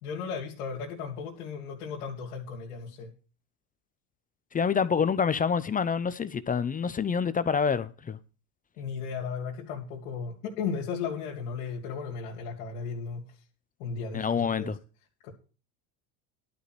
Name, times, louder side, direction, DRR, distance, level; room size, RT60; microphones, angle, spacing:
voice 1, 0.0-3.1 8.8-13.2 13.8-14.7 15.2-15.3, left 5 dB, 85° left, 2.3 m, -35 dB
voice 2, 4.5-8.2 14.1-14.8, left 6 dB, 20° left, 0.6 m, -27 dB
11.5 x 5.1 x 7.8 m
supercardioid pair, 105°, 44 cm